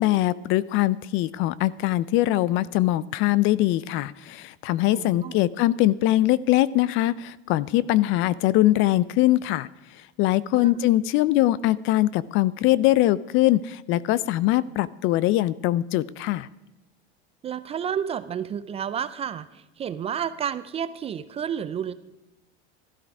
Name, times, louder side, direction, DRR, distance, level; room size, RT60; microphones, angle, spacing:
voice 1, 0.0-9.7 10.2-16.5, left 15 dB, 40° left, 20 dB, 0.4 m, -22 dB
voice 2, 4.9-5.4 10.5-10.8 17.4-21.9, right 8 dB, 20° right, 13 dB, 0.4 m, -31 dB
13.0 x 12.0 x 4.8 m, 1.0 s
supercardioid pair, 140°, 31 cm